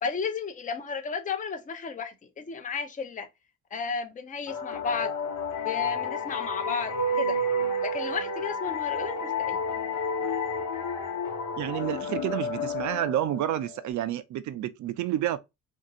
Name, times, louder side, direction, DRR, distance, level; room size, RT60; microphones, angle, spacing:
voice 1, 0.0-3.3 3.7-5.1 5.6-7.3 7.8-9.6, left 5 dB, 25° left, 0.6 m, -33 dB
sound 1, 4.5-13.9, left 2 dB, 80° left, 1.0 m, -30 dB
voice 2, 11.6-15.4, right 12 dB, 70° right, 0.5 m, -29 dB
2.8 x 2.6 x 2.6 m
cardioid pair, 90°, 30 cm